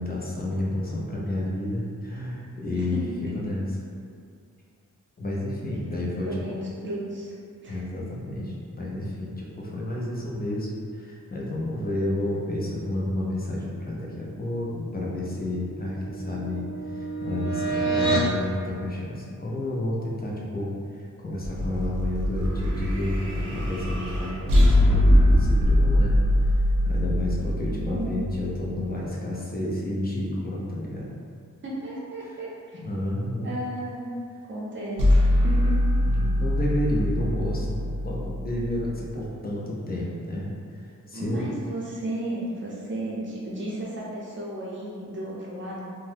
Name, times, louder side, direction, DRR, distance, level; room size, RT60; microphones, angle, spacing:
voice 1, 0.0-3.7 5.2-6.6 7.7-26.2 26.8-31.1 32.7-33.5 36.0-41.5, left 1 dB, 30° left, -4 dB, 0.4 m, -31 dB
voice 2, 2.7-3.0 6.3-7.3 7.6-7.8 27.4-28.2 31.6-32.8 33.4-34.1 34.4-35.8 41.1-45.8, right 1 dB, 35° right, -5 dB, 0.6 m, -34 dB
sound 1, 15.2-18.4, right 3 dB, 90° left, 0.8 m, -29 dB
sound 2, 21.4-28.7 35.0-39.1, left 1 dB, 80° right, 0.7 m, -22 dB
2.7 x 2.1 x 3.3 m, 2.2 s
wide cardioid pair, 175°, 32 cm